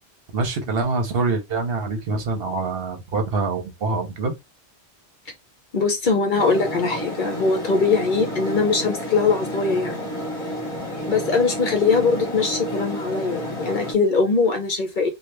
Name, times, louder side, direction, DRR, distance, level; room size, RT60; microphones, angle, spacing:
voice 1, 0.3-4.3, right 3 dB, 60° right, 1.0 m, -25 dB
voice 2, 5.7-10.0 11.1-15.1, left 4 dB, 55° left, 0.7 m, -21 dB
sound 1, 6.4-13.9, equal, 30° left, 1.1 m, -30 dB
2.8 x 2.3 x 3.2 m
omnidirectional pair, 1.1 m